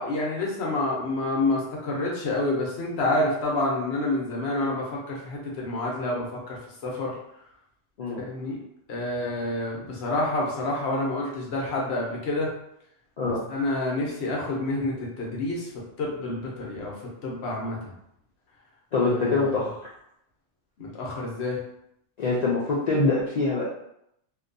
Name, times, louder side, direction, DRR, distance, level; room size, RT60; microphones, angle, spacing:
voice 1, 0.0-7.2 8.3-8.6 8.9-12.5 13.2-16.9 17.2-17.9 19.0-19.6 20.8-21.6, left 2 dB, 65° left, -3 dB, 0.9 m, -28 dB
voice 2, 18.9-19.9 22.2-23.7, left 3 dB, 85° left, -6 dB, 0.3 m, -24 dB
2.6 x 2.2 x 2.5 m, 0.76 s
omnidirectional pair, 1.3 m